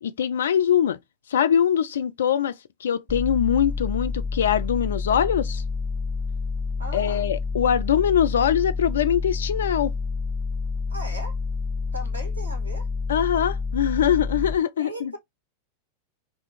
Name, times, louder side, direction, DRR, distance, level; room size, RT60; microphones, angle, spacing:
voice 1, 0.0-1.0 1.3-2.5 2.8-5.6 6.9-9.9 13.1-15.1, left 9 dB, 65° left, 0.3 m, -22 dB
sound 1, 3.1-14.5, left 4 dB, 5° right, 0.8 m, -28 dB
voice 2, 6.8-7.3 10.9-11.3 11.9-12.9 14.8-15.2, equal, 75° right, 1.0 m, -37 dB
2.5 x 2.4 x 3.7 m
figure-of-eight pair, 90°, 0 cm